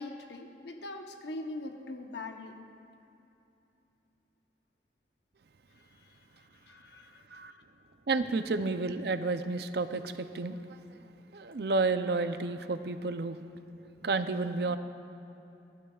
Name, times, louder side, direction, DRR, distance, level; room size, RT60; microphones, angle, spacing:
voice 1, 0.0-2.6 6.0-6.2 6.6-7.6, left 2 dB, 75° left, 4 dB, 0.9 m, -42 dB
voice 2, 8.1-11.0 11.3-13.4 13.8-14.8, right 3 dB, 65° right, 10 dB, 0.5 m, -31 dB
25.0 x 11.5 x 2.4 m, 2.8 s
head